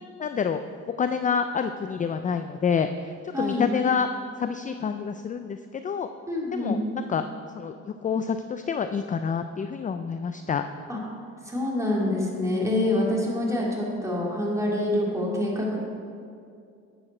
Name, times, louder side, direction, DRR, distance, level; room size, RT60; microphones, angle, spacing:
voice 1, 0.2-0.6 1.0-4.1 4.4-6.1 6.5-6.8 7.1-7.2 7.6-10.6, left 6 dB, 25° left, 9 dB, 0.4 m, -27 dB
voice 2, 3.3-3.7 6.3-6.8 10.9-11.0 11.4-15.8, left 1 dB, 10° right, -4 dB, 2.6 m, -26 dB
11.0 x 7.9 x 4.4 m, 2.4 s
cardioid pair, 90°, 30 cm